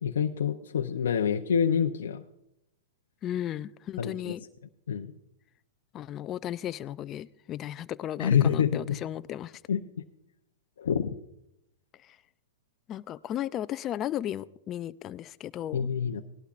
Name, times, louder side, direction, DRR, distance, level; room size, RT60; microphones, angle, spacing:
voice 1, 0.0-2.2 4.0-4.3 4.9-5.1 8.2-9.0 9.7-9.8 10.8-11.1 15.7-16.2, left 7 dB, 85° left, 0.6 m, -26 dB
voice 2, 3.2-4.4 5.9-9.6 12.0-12.2 12.9-15.9, left 11 dB, 25° left, 0.4 m, -35 dB
18.5 x 11.5 x 2.5 m
hypercardioid pair, 145°, 0 cm